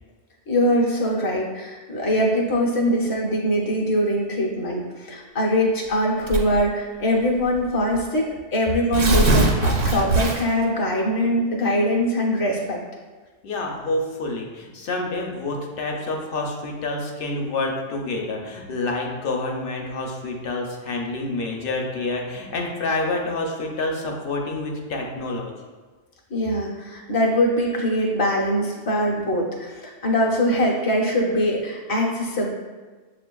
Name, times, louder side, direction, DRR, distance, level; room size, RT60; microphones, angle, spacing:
voice 1, 0.5-12.8 26.3-32.5, equal, 30° left, -2 dB, 0.4 m, -22 dB
Tearing, 6.3-6.7 7.5-7.6 7.9-8.0 8.7-10.6, right 2 dB, 90° right, 1.1 m, -20 dB
voice 2, 13.4-25.5, left 2 dB, 60° left, 1 dB, 0.7 m, -28 dB
7.3 x 2.5 x 2.2 m, 1.3 s
omnidirectional pair, 1.2 m